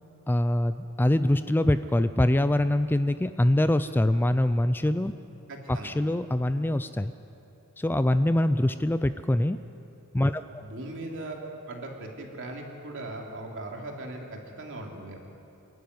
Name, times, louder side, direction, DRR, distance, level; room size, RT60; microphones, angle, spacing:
voice 1, 0.3-5.1 5.7-7.1 7.8-9.6 10.1-10.4, left 1 dB, 10° left, 12 dB, 0.4 m, -24 dB
voice 2, 5.5-5.9 10.6-15.2, right 2 dB, 60° right, 0 dB, 3.0 m, -39 dB
26.5 x 11.5 x 9.5 m, 2.9 s
head